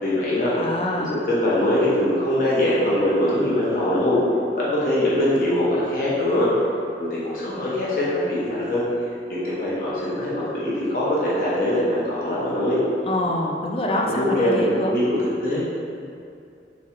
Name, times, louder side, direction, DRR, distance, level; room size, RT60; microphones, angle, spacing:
voice 1, 0.0-0.5 1.1-4.2 4.5-6.5 7.0-8.8 9.3-12.8 13.9-15.6, left 1 dB, 50° left, -8 dB, 0.9 m, -22 dB
voice 2, 0.5-1.1 13.0-14.9, left 1 dB, 30° left, 0 dB, 0.4 m, -25 dB
3.7 x 3.1 x 4.3 m, 2.5 s
head